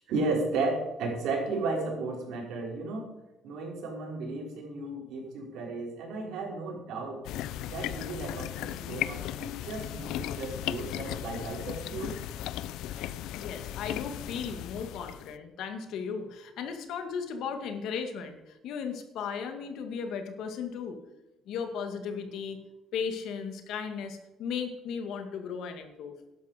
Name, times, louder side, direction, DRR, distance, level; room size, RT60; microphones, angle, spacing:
voice 1, 0.1-3.1 3.4-7.2 7.7-12.2, right 3 dB, 75° right, -1 dB, 5.3 m, -34 dB
sound 1, 7.2-15.3, left 12 dB, 90° left, 0.5 m, -36 dB
voice 2, 13.4-21.0 21.5-22.6 22.9-26.2, left 6 dB, 75° left, 6 dB, 2.1 m, -36 dB
12.5 x 11.0 x 5.2 m, 0.98 s
cardioid pair, 150°, 0 cm